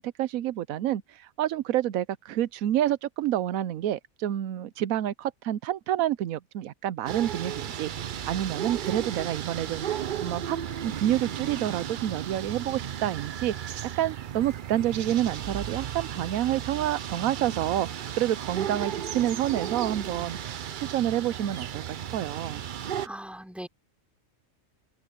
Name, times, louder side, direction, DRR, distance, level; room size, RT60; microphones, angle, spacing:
voice 1, 0.0-7.9 8.3-13.5 14.0-22.6, right 12 dB, 90° right, 1.1 m, -28 dB
sound 1, 7.1-23.1, right 9 dB, 55° right, 0.6 m, -35 dB
voice 2, 23.0-23.7, equal, ahead, 4.3 m, -39 dB
open air
omnidirectional pair, 1.4 m